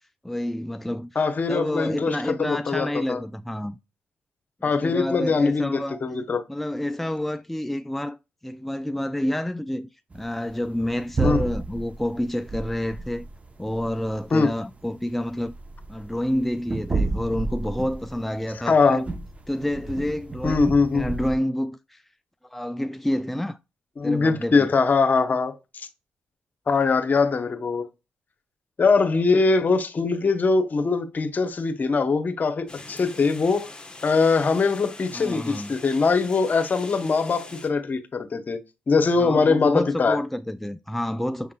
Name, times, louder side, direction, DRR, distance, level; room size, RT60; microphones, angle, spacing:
voice 1, 0.2-1.2 1.5-3.8 4.6-6.0 6.5-8.2 8.4-9.9 10.1-13.3 13.6-15.5 15.9-19.1 19.5-22.0 22.4-23.6 24.0-24.7 35.1-35.7 39.2-41.5, left 1 dB, 5° left, 0.4 m, -28 dB
voice 2, 1.1-3.2 4.6-6.4 11.2-11.4 14.3-14.5 18.6-19.0 20.4-21.1 24.0-25.9 26.7-27.9 28.8-33.7 34.0-38.6 38.9-40.2, left 4 dB, 45° left, 1.0 m, -22 dB
sound 1, 10.1-21.3, right 3 dB, 35° right, 1.0 m, -32 dB
sound 2, 32.7-37.7, left 2 dB, 20° left, 1.2 m, -43 dB
6.3 x 3.6 x 2.4 m
hypercardioid pair, 45°, 4 cm